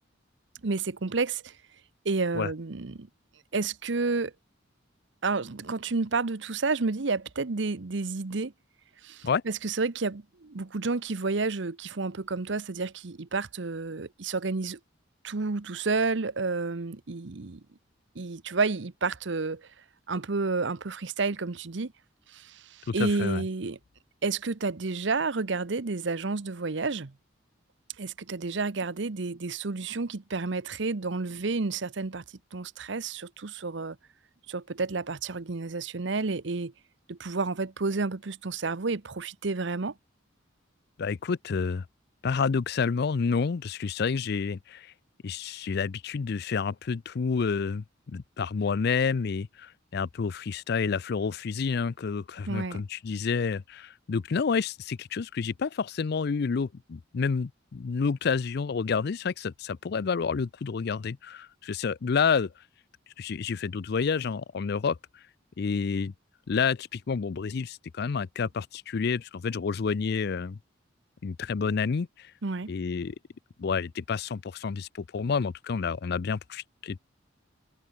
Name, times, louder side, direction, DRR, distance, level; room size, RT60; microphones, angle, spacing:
voice 1, 0.6-1.5 2.0-3.1 3.5-4.3 5.2-8.5 9.0-14.8 15.2-17.6 18.1-19.6 20.1-21.9 22.3-23.8 24.2-27.1 28.0-32.2 32.5-34.0 34.5-36.7 37.1-39.9 52.5-52.8 72.4-72.7, right 4 dB, 65° right, 0.9 m, -30 dB
voice 2, 22.9-23.4 41.0-41.8 42.2-44.9 45.2-62.5 63.2-65.0 65.6-66.1 66.5-70.6 71.2-72.3 72.7-73.1 73.6-77.0, left 5 dB, 55° left, 0.4 m, -29 dB
head